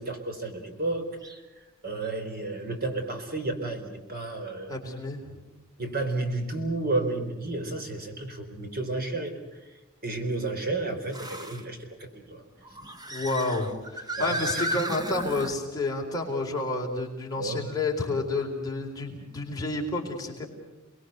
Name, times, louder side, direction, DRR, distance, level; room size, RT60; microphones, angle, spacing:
voice 1, 0.0-4.7 5.8-12.4 14.2-14.6 17.4-17.7, right 2 dB, 45° right, 5 dB, 4.2 m, -32 dB
sound 1, 1.2-1.4 2.0-2.1 4.2-4.3 7.8-7.9 11.1-11.7 12.6-15.6, right 1 dB, 20° right, 1.7 m, -35 dB
voice 2, 4.7-5.2 13.1-20.5, left 2 dB, 20° left, -1 dB, 4.1 m, -30 dB
29.5 x 21.0 x 8.1 m, 1.1 s
head